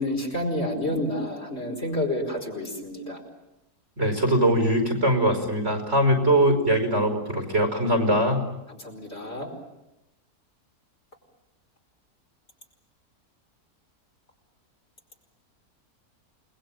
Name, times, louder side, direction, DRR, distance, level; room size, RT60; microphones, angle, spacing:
voice 1, 0.0-3.2 8.7-9.5, left 1 dB, 40° left, 1 dB, 5.3 m, -29 dB
voice 2, 4.0-8.4, right 1 dB, 45° right, 5 dB, 5.4 m, -22 dB
29.0 x 21.0 x 9.0 m, 0.93 s
omnidirectional pair, 1.6 m